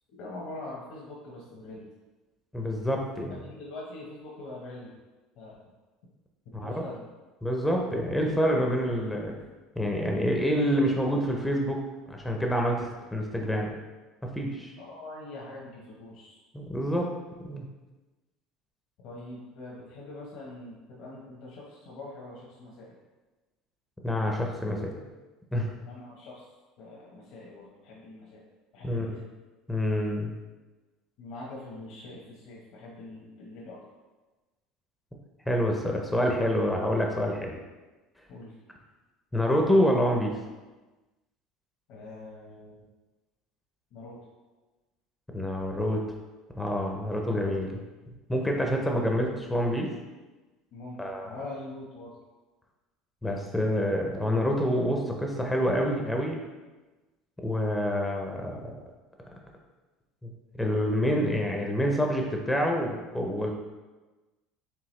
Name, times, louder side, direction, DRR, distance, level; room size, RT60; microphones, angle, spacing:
voice 1, 0.1-1.9 3.4-5.0 5.4-5.6 6.6-7.1 14.8-16.4 19.0-22.9 25.9-26.5 26.8-28.4 28.7-29.2 31.2-33.8 38.3-38.5 41.9-42.7 43.9-44.2 48.6-48.7 50.7-51.0 51.2-52.1, left 2 dB, 65° left, -5 dB, 0.9 m, -43 dB
voice 2, 2.5-3.4 6.6-6.8 7.4-9.3 9.8-11.8 12.1-12.9 13.1-13.7 14.4-14.7 16.5-17.1 17.5-17.6 24.0-25.0 25.5-25.7 28.8-29.2 29.7-30.4 35.5-37.6 39.3-40.3 45.3-46.0 46.6-47.8 48.3-49.9 51.0-51.4 53.2-56.4 57.4-58.8 60.2-60.3 60.6-63.5, equal, 5° left, 1 dB, 0.5 m, -27 dB
4.7 x 3.5 x 3.1 m, 1.2 s
cardioid pair, 135°, 0 cm